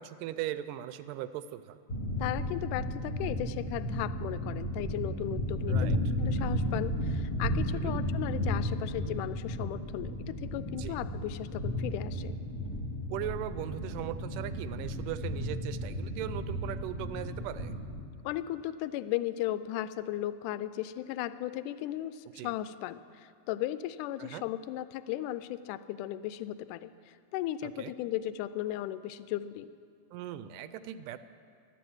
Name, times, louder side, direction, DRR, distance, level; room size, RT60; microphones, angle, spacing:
voice 1, 0.0-1.8 5.7-6.0 7.7-8.0 10.7-11.0 13.1-17.7 22.4-22.5 24.2-24.4 27.6-27.9 30.1-31.2, right 12 dB, 80° right, 13 dB, 2.2 m, -39 dB
sound 1, 1.9-18.0, equal, 20° left, 1.5 m, -34 dB
voice 2, 2.2-12.4 18.2-29.7, left 13 dB, 80° left, 14 dB, 2.0 m, -36 dB
14.0 x 12.5 x 7.9 m, 2.3 s
omnidirectional pair, 3.9 m